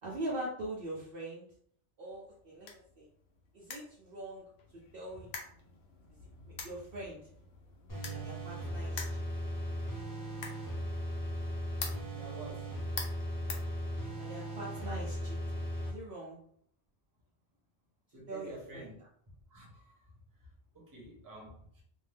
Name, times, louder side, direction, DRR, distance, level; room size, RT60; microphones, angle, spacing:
voice 1, 0.0-1.4 2.0-3.1 3.5-4.5 4.9-5.3 6.5-7.2 8.1-9.0 14.2-16.4 18.3-18.9, right 1 dB, 60° right, -4 dB, 0.7 m, -42 dB
sound 1, 2.1-14.4, left 5 dB, 65° left, 0.8 m, -48 dB
sound 2, 7.9-15.9, equal, 25° left, 0.5 m, -37 dB
voice 2, 12.1-12.8 18.1-19.0 19.5-21.8, right 2 dB, 20° right, -3 dB, 0.8 m, -50 dB
2.6 x 2.1 x 3.3 m, 0.63 s
omnidirectional pair, 1.2 m